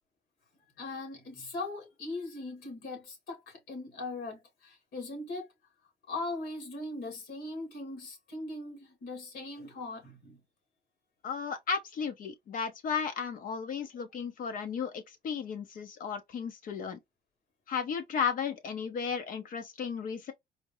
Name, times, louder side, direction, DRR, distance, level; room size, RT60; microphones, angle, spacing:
voice 1, 0.8-5.5 6.1-10.4, left 2 dB, 75° left, 2.2 m, -40 dB
voice 2, 11.2-17.0 17.7-20.3, left 6 dB, 55° left, 0.9 m, -34 dB
4.4 x 2.1 x 3.1 m
cardioid pair, 110°, 17 cm